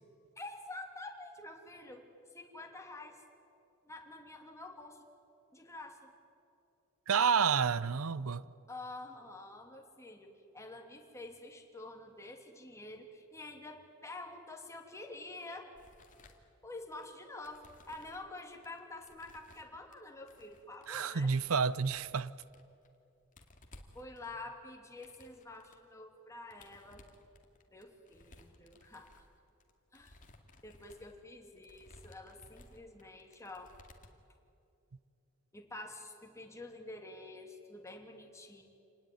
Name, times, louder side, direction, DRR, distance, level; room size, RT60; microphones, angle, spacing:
voice 1, 0.4-3.2 3.8-5.0 5.5-6.1 7.4-7.7 8.7-15.7 16.6-21.3 23.9-27.1 27.7-29.2 29.9-30.2 30.6-33.7 35.5-38.6, left 2 dB, 15° left, 2.8 m, -48 dB
voice 2, 7.1-8.5 20.9-22.3, right 6 dB, 75° right, 0.7 m, -29 dB
sound 1, 15.7-17.0 17.4-18.3 18.6-19.9 20.3-21.0 21.3-23.0 23.2-25.8 26.4-34.3, left 2 dB, 40° left, 2.3 m, -59 dB
27.5 x 19.5 x 9.3 m
head